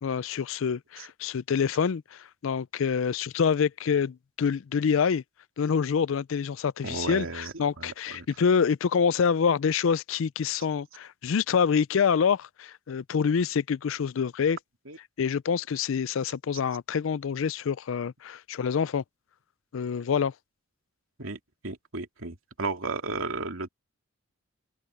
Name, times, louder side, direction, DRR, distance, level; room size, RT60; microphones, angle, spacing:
voice 1, 0.0-5.2 5.6-14.6 15.2-19.0 19.7-20.3, left 6 dB, 70° left, 0.4 m, -26 dB
voice 2, 6.8-8.3 14.9-15.0 21.2-23.7, right 3 dB, 80° right, 2.7 m, -34 dB
open air
head